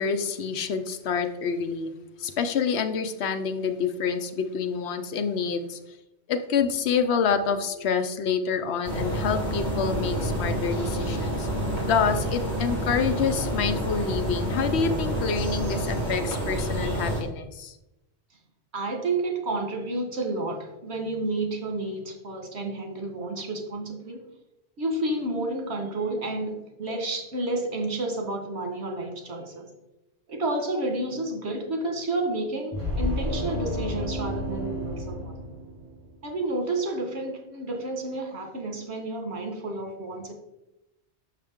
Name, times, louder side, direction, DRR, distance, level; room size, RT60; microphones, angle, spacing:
voice 1, 0.0-5.8 6.3-11.5 11.9-17.8, left 6 dB, 70° left, 8 dB, 0.9 m, -27 dB
sound 1, 8.8-17.2, right 1 dB, 40° left, 2.4 m, -28 dB
voice 2, 18.7-24.2 24.8-29.7 30.3-35.3 36.2-40.3, right 2 dB, 70° right, 3 dB, 1.6 m, -30 dB
sound 2, 32.7-36.2, equal, 25° right, 1.7 m, -31 dB
6.6 x 6.1 x 3.5 m, 0.91 s
omnidirectional pair, 1.2 m